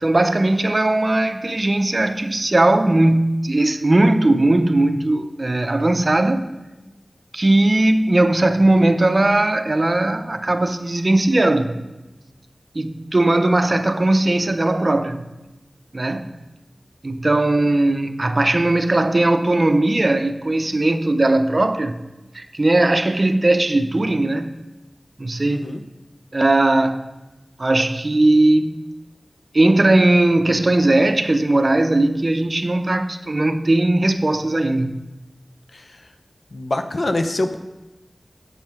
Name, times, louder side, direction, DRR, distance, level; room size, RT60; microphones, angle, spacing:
voice 1, 0.0-6.5 7.3-11.8 12.7-15.3 15.9-16.3 17.0-22.0 22.3-24.5 25.2-25.6 26.3-27.1 27.6-28.8 29.5-35.0, right 2 dB, 50° right, 0.7 m, -18 dB
voice 2, 25.4-25.8 36.5-37.6, left 2 dB, 65° left, 0.7 m, -24 dB
8.1 x 5.4 x 5.8 m
wide cardioid pair, 45°, 0 cm